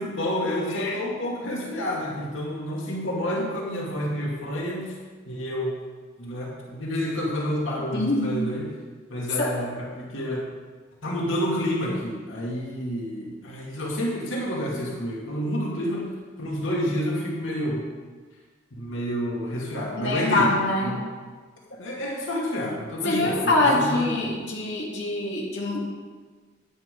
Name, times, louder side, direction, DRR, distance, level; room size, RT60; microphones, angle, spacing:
voice 1, 0.0-4.9 5.3-5.8 6.2-8.7 9.1-10.5 11.0-16.1 16.4-17.9 18.7-21.0 21.8-24.5, equal, 85° left, -3 dB, 2.3 m, -29 dB
voice 2, 7.9-8.3 9.4-9.5 20.0-21.0 23.0-25.9, left 2 dB, 60° left, -4 dB, 2.4 m, -24 dB
10.5 x 9.6 x 5.3 m, 1.4 s
head